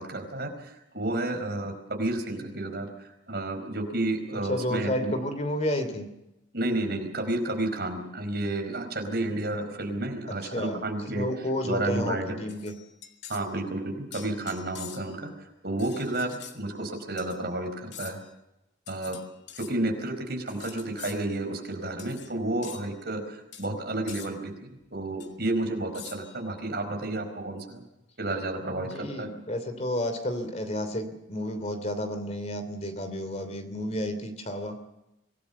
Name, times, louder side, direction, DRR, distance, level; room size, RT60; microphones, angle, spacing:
voice 1, 0.0-5.1 6.5-11.3 11.6-12.4 13.3-18.2 18.9-19.2 19.6-24.5 24.9-27.8 28.2-29.3, right 2 dB, 50° right, 5 dB, 4.6 m, -31 dB
voice 2, 4.5-6.1 10.3-12.8 28.7-34.8, left 1 dB, 35° left, 8 dB, 2.9 m, -31 dB
sound 1, 12.5-13.5 14.1-15.2 15.8-16.6 17.2-17.4 17.9-18.3 18.9-19.7 20.5-21.2 22.0-22.3 22.6-22.9 23.5-23.7 24.1-24.3 25.2-25.3 25.9-26.4, left 9 dB, 60° left, 2.5 m, -45 dB
25.5 x 18.0 x 7.1 m, 0.92 s
head